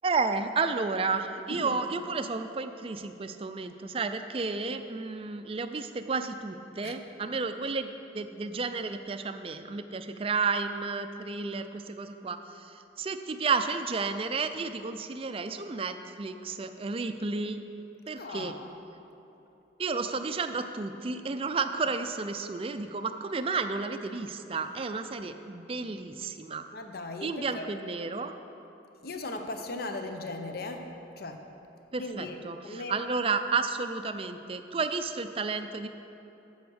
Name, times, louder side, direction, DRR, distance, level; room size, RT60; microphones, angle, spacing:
voice 1, 0.0-17.6 18.1-18.5 19.8-26.6 27.2-28.3 31.9-35.9, right 4 dB, 30° right, 8 dB, 0.4 m, -32 dB
voice 2, 18.2-18.7 26.7-27.7 29.0-30.8 31.2-31.4 32.0-32.4 32.6-33.0, left 2 dB, 55° left, 5 dB, 0.7 m, -38 dB
8.4 x 7.9 x 6.2 m, 3.0 s
head